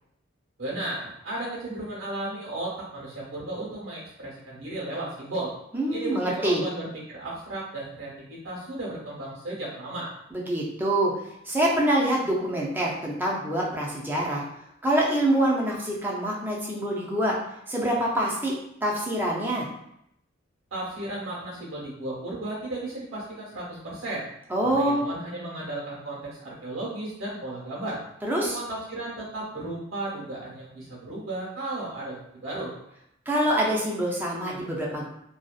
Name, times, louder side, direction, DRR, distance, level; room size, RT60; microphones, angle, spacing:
voice 1, 0.6-5.5 5.9-10.1 20.7-24.2 24.7-28.0 28.4-32.7, right 2 dB, 85° right, -5 dB, 1.1 m, -34 dB
voice 2, 5.7-6.6 10.3-11.1 11.4-14.4 14.8-17.4 17.7-19.7 24.5-25.1 28.2-28.6 33.3-35.1, right 1 dB, 10° right, -4 dB, 0.4 m, -25 dB
2.6 x 2.3 x 2.4 m, 0.76 s
head